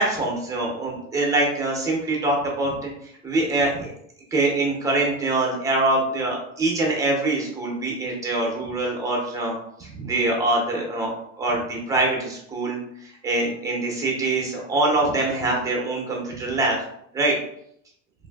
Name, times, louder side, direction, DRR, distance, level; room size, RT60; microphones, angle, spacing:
voice 1, 0.0-2.9 3.2-3.9 4.3-9.5 9.8-16.8 17.1-17.4, right 2 dB, 10° right, -1 dB, 0.5 m, -24 dB
3.0 x 2.5 x 2.2 m, 0.72 s
supercardioid pair, 145°, 38 cm